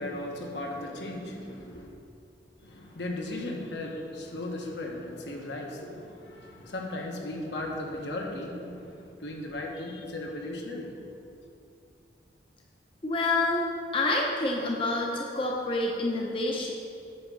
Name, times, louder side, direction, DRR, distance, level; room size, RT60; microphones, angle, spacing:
voice 1, 0.0-2.0 2.6-11.0, left 1 dB, 70° left, 0 dB, 1.0 m, -36 dB
voice 2, 13.0-16.7, left 2 dB, 30° left, -1 dB, 0.6 m, -28 dB
8.5 x 3.5 x 6.2 m, 2.5 s
head